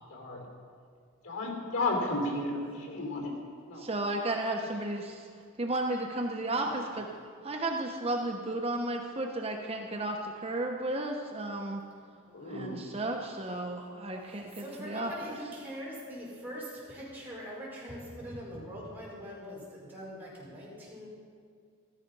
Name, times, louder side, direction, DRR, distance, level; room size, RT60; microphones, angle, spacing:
voice 1, 0.1-0.4 1.2-3.3 3.7-3.8 12.3-12.8, left 2 dB, 85° left, 1 dB, 3.6 m, -33 dB
voice 2, 3.8-5.2 5.6-7.1 7.4-11.8 12.5-15.1, right 2 dB, 25° right, 2 dB, 0.9 m, -33 dB
voice 3, 14.2-21.1, equal, 10° right, -7 dB, 5.2 m, -43 dB
15.0 x 14.0 x 5.4 m, 2.2 s
head